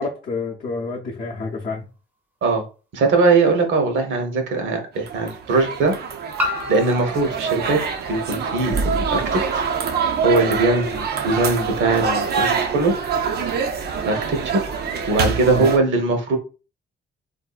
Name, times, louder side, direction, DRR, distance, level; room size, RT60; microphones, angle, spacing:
voice 1, 0.0-1.9 15.5-15.7, left 3 dB, 45° left, -3 dB, 0.6 m, -28 dB
sound 1, 2.4-2.5 4.2-4.3 6.4-8.9, left 2 dB, 10° right, 0.6 m, -31 dB
voice 2, 2.9-5.9 6.4-7.8 8.1-9.6 10.2-12.9 14.0-14.7 15.1-16.4, right 3 dB, 70° right, 4 dB, 0.9 m, -20 dB
sound 2, 5.0-15.8, right 5 dB, 55° right, 0.5 m, -25 dB
3.6 x 2.6 x 2.4 m, 0.34 s
cardioid pair, 155°, 20 cm